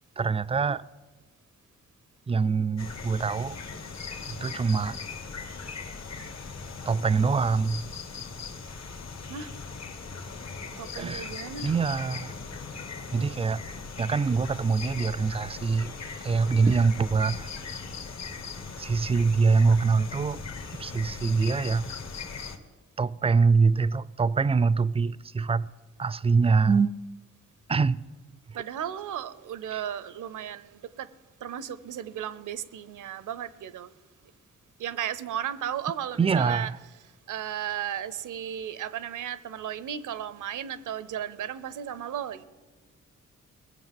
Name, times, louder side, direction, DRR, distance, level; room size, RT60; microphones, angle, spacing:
voice 1, 0.2-0.8 2.3-3.6 4.3-5.0 6.9-7.8 11.0-11.3 11.6-12.4 13.1-13.6 14.0-15.9 16.2-17.5 18.8-20.4 20.7-21.9 23.0-25.7 26.0-27.0 27.7-28.0 28.5-28.6 29.7-29.8 36.2-36.8, right 4 dB, 20° right, 0.4 m, -24 dB
sound 1, 2.8-22.6, left 5 dB, 60° left, 1.5 m, -39 dB
voice 2, 10.8-11.7 16.7-16.9 28.5-31.1 31.4-33.9 34.8-36.7 37.3-42.4, right 10 dB, 85° right, 0.7 m, -35 dB
19.5 x 7.3 x 7.6 m
cardioid pair, 75°, 30 cm